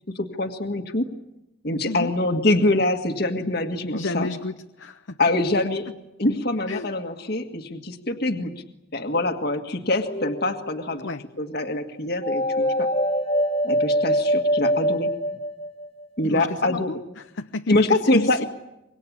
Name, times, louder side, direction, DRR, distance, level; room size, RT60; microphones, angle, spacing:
voice 1, 0.2-1.1 1.6-4.3 5.2-5.9 6.2-8.5 8.9-11.1 11.4-12.9 13.6-15.1 16.2-16.9 17.7-18.4, left 2 dB, 55° left, 5 dB, 1.9 m, -24 dB
voice 2, 3.9-5.2 6.7-6.9 11.0-11.2 16.2-17.0 17.4-18.4, left 2 dB, 80° left, 7 dB, 0.9 m, -31 dB
sound 1, 10.0-10.8 12.2-16.0, equal, 30° left, 1.5 m, -24 dB
25.5 x 23.0 x 8.6 m, 0.93 s
head